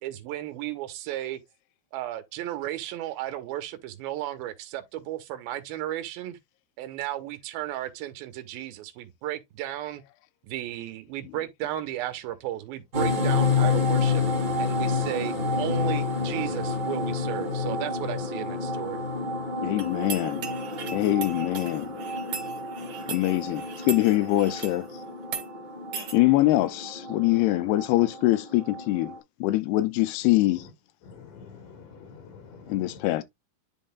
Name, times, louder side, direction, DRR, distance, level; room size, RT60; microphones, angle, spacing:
voice 1, 0.0-1.4 1.9-6.4 6.8-10.0 10.4-14.2 14.6-19.0, right 13 dB, 75° right, 2.7 m, -34 dB
sound 1, 12.9-29.2, left 4 dB, 35° right, 2.0 m, -29 dB
voice 2, 19.6-20.5 20.9-22.0 23.1-24.9 26.1-30.7 32.7-33.2, left 17 dB, 85° left, 2.6 m, -24 dB
sound 2, 19.8-24.8 25.2-25.5 25.9-26.2, right 6 dB, 55° right, 2.6 m, -38 dB
voice 3, 31.0-33.2, left 5 dB, 65° left, 1.8 m, -47 dB
11.0 x 3.8 x 2.3 m
omnidirectional pair, 4.6 m